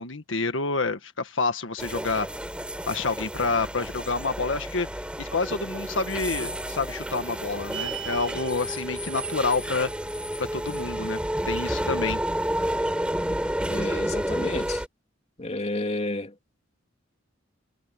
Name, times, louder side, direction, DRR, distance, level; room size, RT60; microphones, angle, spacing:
voice 1, 0.0-2.3 2.9-4.9 5.2-9.9 10.4-12.2, left 3 dB, 85° left, 1.6 m, -28 dB
sound 1, 1.8-14.9, equal, 5° right, 4.8 m, -30 dB
sound 2, 7.7-8.6, right 11 dB, 90° right, 7.6 m, -36 dB
voice 2, 13.7-14.8 15.4-16.3, left 2 dB, 35° left, 3.0 m, -30 dB
head